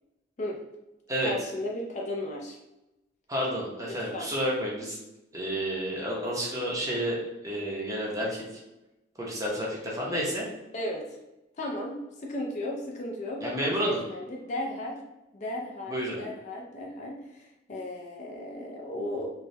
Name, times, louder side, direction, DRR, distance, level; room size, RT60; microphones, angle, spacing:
voice 1, 1.2-2.6 3.9-4.3 10.7-11.2 11.6-13.4 13.8-15.0 15.3-19.3, left 1 dB, 40° left, 0 dB, 0.3 m, -35 dB
voice 2, 3.3-5.0 5.3-7.2 7.4-8.4 9.2-10.5 13.4-14.0 15.9-16.2, equal, 15° right, -4 dB, 0.6 m, -30 dB
3.0 x 2.2 x 2.6 m, 0.95 s
head